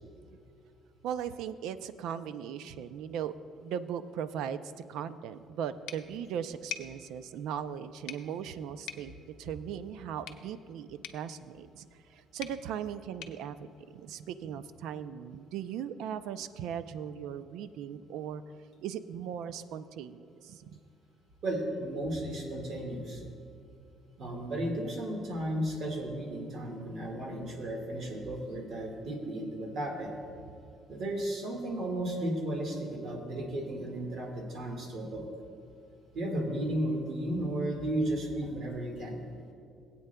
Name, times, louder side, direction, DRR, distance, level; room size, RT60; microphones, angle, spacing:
voice 1, 1.0-3.3 3.6-4.6 4.9-18.4 18.8-20.8, right 8 dB, 85° right, 13 dB, 0.4 m, -38 dB
sound 1, 5.9-14.6, left 10 dB, 85° left, 0.6 m, -48 dB
voice 2, 21.4-23.2 24.2-30.1 30.9-35.2 36.1-39.2, right 1 dB, 55° right, 1 dB, 1.7 m, -34 dB
20.0 x 8.4 x 2.2 m, 2.4 s
cardioid pair, 140°, 0 cm